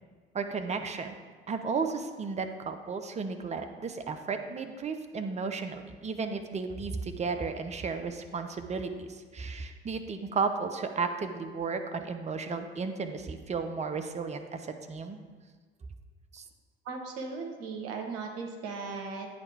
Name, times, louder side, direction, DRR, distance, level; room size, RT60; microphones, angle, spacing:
voice 1, 0.3-1.1 1.5-15.2 16.3-16.4, right 4 dB, 25° right, 7 dB, 0.6 m, -34 dB
voice 2, 16.8-19.3, right 4 dB, 55° right, 3 dB, 1.0 m, -37 dB
8.7 x 3.3 x 4.6 m, 1.5 s
figure-of-eight pair, 50°, 29 cm